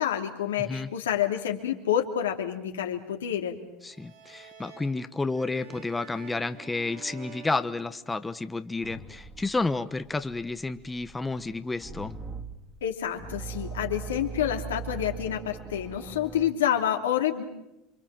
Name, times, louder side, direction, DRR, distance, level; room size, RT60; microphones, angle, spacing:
voice 1, 0.0-3.6 12.8-17.4, left 10 dB, 90° left, 4 dB, 2.8 m, -28 dB
voice 2, 3.8-12.1, left 3 dB, 15° left, 11 dB, 1.2 m, -31 dB
sound 1, 3.9-8.5, right 5 dB, 85° right, 7.0 m, -49 dB
sound 2, 8.8-16.5, right 5 dB, 15° right, 3.1 m, -40 dB
28.0 x 24.5 x 7.6 m, 0.90 s
hypercardioid pair, 90°, 0 cm